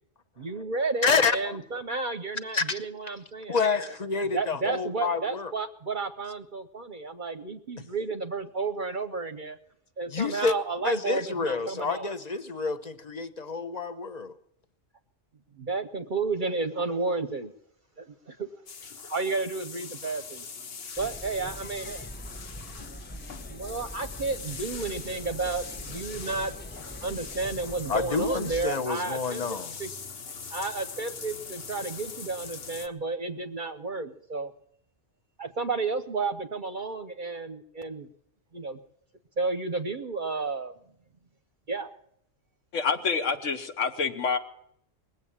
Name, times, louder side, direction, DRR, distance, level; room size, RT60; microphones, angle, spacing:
voice 1, 0.4-3.9 4.3-9.6 10.0-12.1 15.6-17.5 18.0-18.5 19.1-20.4 21.0-22.1 23.5-26.5 27.0-29.9 30.5-34.5 35.4-38.1 38.5-38.8 39.4-40.7 41.7-41.9, right 3 dB, 45° right, 9 dB, 0.8 m, -32 dB
voice 2, 1.0-1.6 2.5-2.8 3.5-5.5 10.1-10.5 10.8-14.3 27.9-29.7, left 5 dB, 40° left, 9 dB, 0.8 m, -28 dB
sound 1, 18.7-32.9, left 5 dB, 55° left, 1.1 m, -42 dB
sound 2, 21.0-28.7, equal, 10° left, 0.5 m, -43 dB
voice 3, 42.7-44.4, left 5 dB, 75° left, 8 dB, 1.5 m, -27 dB
20.5 x 8.0 x 8.6 m, 0.72 s
omnidirectional pair, 1.3 m